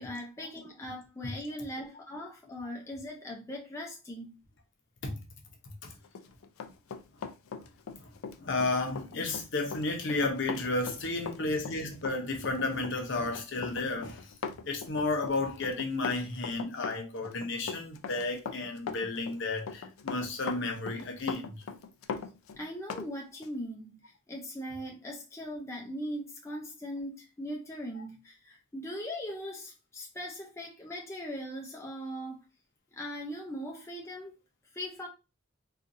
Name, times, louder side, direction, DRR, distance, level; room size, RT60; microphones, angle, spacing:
voice 1, 0.0-4.4 22.6-32.4 32.9-34.3 34.7-35.1, equal, 15° left, 0.4 m, -40 dB
Run, 6.0-23.1 23.4-23.6, left 5 dB, 80° left, 0.4 m, -40 dB
voice 2, 8.4-14.3 14.7-21.6, left 2 dB, 60° left, 0.8 m, -32 dB
3.9 x 2.4 x 2.5 m
head